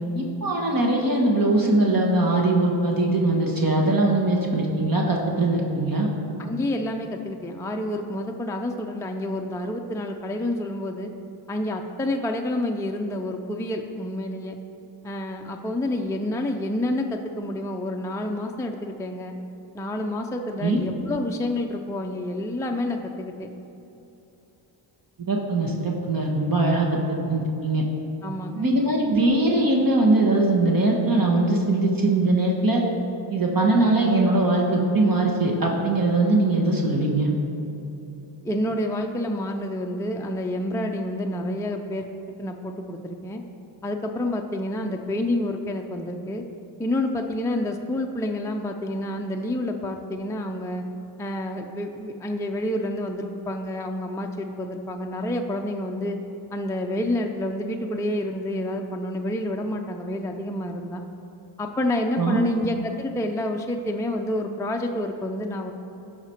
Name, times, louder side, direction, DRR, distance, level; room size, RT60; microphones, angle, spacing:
voice 1, 0.1-6.1 20.6-20.8 25.3-27.8 28.5-32.8 33.3-37.3 62.2-62.4, right 2 dB, 45° right, -1 dB, 1.3 m, -21 dB
voice 2, 6.4-11.1 11.5-14.6 15.0-19.3 19.7-23.5 28.2-28.7 38.4-42.1 42.4-43.4 43.8-46.4 46.8-50.8 51.2-56.2 56.5-61.0 61.6-65.7, left 1 dB, 5° left, 3 dB, 0.5 m, -28 dB
11.5 x 5.0 x 4.5 m, 3.0 s
cardioid pair, 65°, 50 cm